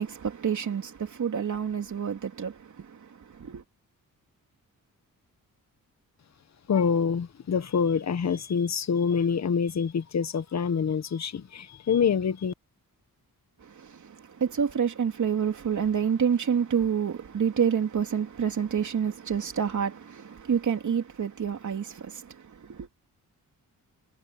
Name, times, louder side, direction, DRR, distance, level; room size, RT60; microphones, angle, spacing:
voice 1, 0.0-3.6 13.6-22.9, right 7 dB, 55° right, 3.3 m, -28 dB
voice 2, 6.7-12.5, left 6 dB, 50° left, 1.4 m, -26 dB
wide cardioid pair, 140°, 34 cm